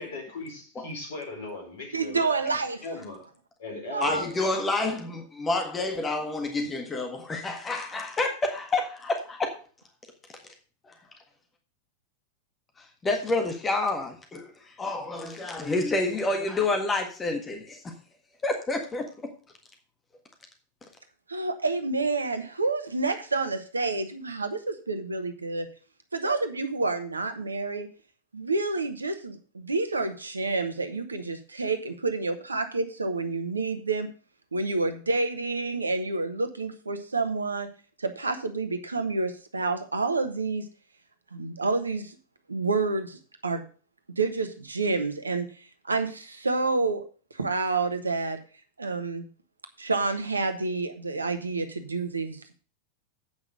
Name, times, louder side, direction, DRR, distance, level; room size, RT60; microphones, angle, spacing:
voice 1, 0.0-3.2 3.6-4.6, left 1 dB, 55° left, 4.3 m, -38 dB
voice 2, 1.9-2.8 3.9-4.3 21.3-25.7 26.1-27.9 28.3-34.1 34.5-37.7 38.0-40.6 41.3-42.2 42.5-43.6 44.2-45.5 45.8-47.0 47.3-48.4 48.8-49.3 49.8-52.5, right 3 dB, 80° right, 1.2 m, -28 dB
voice 3, 4.0-9.5 13.0-14.5 14.8-17.8 18.4-19.0, left 2 dB, 15° left, 1.6 m, -28 dB
8.7 x 6.0 x 6.5 m
figure-of-eight pair, 90°, 0 cm